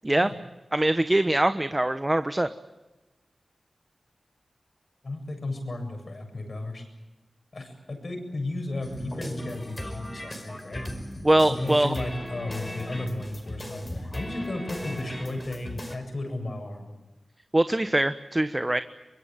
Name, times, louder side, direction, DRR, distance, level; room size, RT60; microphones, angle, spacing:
voice 1, 0.7-2.5 11.2-11.9 17.5-18.8, right 1 dB, 20° right, 10 dB, 1.1 m, -23 dB
voice 2, 5.0-6.8 7.5-10.8 11.5-16.9, left 2 dB, 55° left, 6 dB, 7.8 m, -34 dB
sound 1, 8.8-16.0, left 1 dB, 20° left, 5.3 m, -37 dB
24.0 x 21.5 x 9.1 m, 1.1 s
cardioid pair, 50°, 0 cm